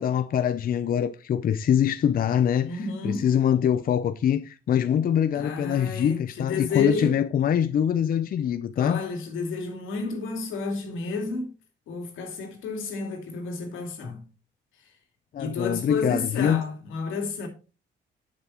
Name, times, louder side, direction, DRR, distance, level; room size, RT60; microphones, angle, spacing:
voice 1, 0.0-9.0 15.3-16.6, left 9 dB, 45° left, 0.5 m, -24 dB
voice 2, 2.6-3.3 5.3-7.2 8.8-11.5 11.9-14.3 15.4-17.5, left 4 dB, 85° left, 2.5 m, -31 dB
7.4 x 6.8 x 4.3 m
cardioid pair, 90°, 20 cm